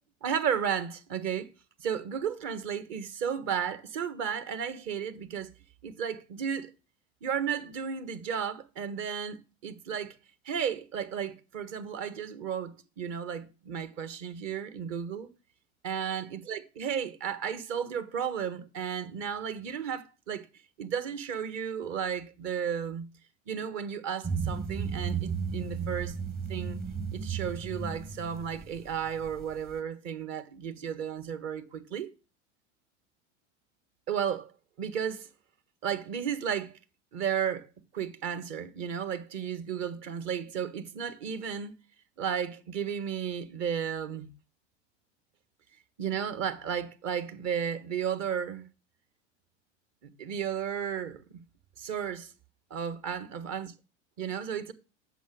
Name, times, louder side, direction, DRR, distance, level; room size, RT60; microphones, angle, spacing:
voice 1, 0.2-1.5 1.8-5.5 5.8-6.7 7.2-10.2 10.4-15.3 15.8-20.5 20.8-23.0 23.5-26.1 26.5-26.8 27.1-32.1 34.1-34.5 34.8-35.3 35.8-36.8 37.1-37.7 37.9-41.7 42.2-44.3 46.0-48.7 50.0-51.4 51.8-52.3 52.7-53.7 54.2-54.7, right 8 dB, 45° right, 1.6 m, -33 dB
sound 1, 24.2-29.7, right 6 dB, 25° right, 1.3 m, -34 dB
8.2 x 7.1 x 6.3 m
figure-of-eight pair, 85°, 35 cm